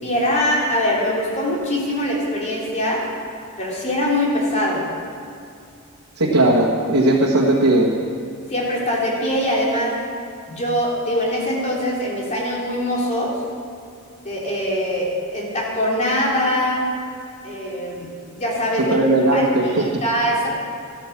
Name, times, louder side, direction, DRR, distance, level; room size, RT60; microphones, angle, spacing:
voice 1, 0.0-3.0 3.6-4.8 8.5-9.9 10.5-13.3 14.2-16.8 17.4-19.0 19.3-19.5 20.0-20.5, left 1 dB, 30° left, -4 dB, 3.3 m, -22 dB
voice 2, 6.2-7.9 18.8-20.0, right 1 dB, 75° right, -4 dB, 1.6 m, -17 dB
13.0 x 13.0 x 6.1 m, 2.4 s
head